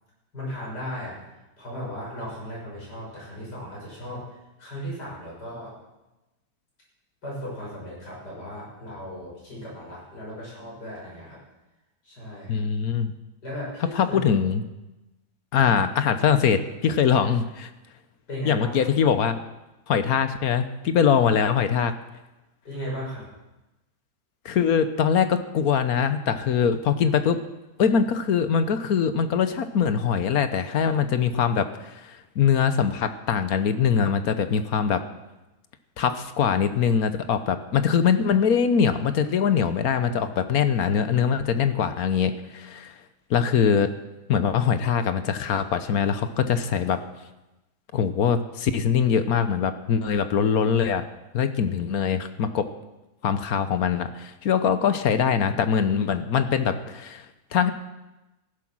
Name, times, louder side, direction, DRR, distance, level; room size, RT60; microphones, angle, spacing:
voice 1, 0.3-5.8 7.2-11.4 12.0-12.6 13.4-14.2 15.6-15.7 16.1-16.3 17.1-17.3 18.3-18.9 22.6-23.3, equal, 80° left, -5 dB, 7.2 m, -36 dB
voice 2, 12.5-13.1 13.9-14.6 15.5-17.7 18.4-19.4 19.9-21.9 24.4-27.4 27.8-35.0 36.0-42.9 43.3-43.9 44.3-47.0 47.9-51.1 51.3-52.6 53.2-57.3 57.5-57.7, left 7 dB, 65° left, 10 dB, 1.3 m, -22 dB
15.0 x 11.0 x 6.2 m, 1.0 s
omnidirectional pair, 1.8 m